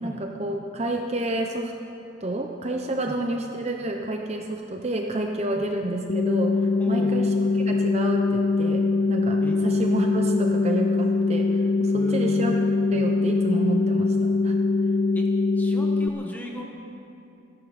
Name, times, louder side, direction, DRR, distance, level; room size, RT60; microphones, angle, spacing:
voice 1, 0.0-1.7 2.2-7.3 7.6-12.6 12.9-14.6, right 1 dB, 30° right, 2 dB, 0.8 m, -29 dB
sound 1, 6.1-16.1, left 3 dB, 45° left, 0.4 m, -23 dB
voice 2, 6.8-7.2 9.4-9.6 11.9-12.6 15.1-15.3 15.5-16.6, equal, 10° left, 0 dB, 1.6 m, -37 dB
27.5 x 11.0 x 4.3 m, 2.8 s
head